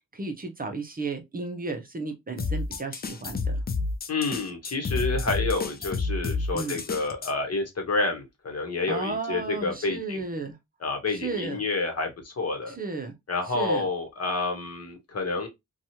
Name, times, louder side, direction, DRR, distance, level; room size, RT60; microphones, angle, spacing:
voice 1, 0.1-3.6 6.5-6.8 8.9-10.6 11.1-11.6 12.7-13.1 13.5-13.9, right 3 dB, 30° right, 0.6 m, -33 dB
sound 1, 2.4-7.3, left 3 dB, 30° left, 0.4 m, -30 dB
voice 2, 4.1-10.2 10.8-12.7 13.3-15.5, left 3 dB, 50° left, 1.0 m, -29 dB
2.9 x 2.3 x 2.7 m
wide cardioid pair, 110°, 31 cm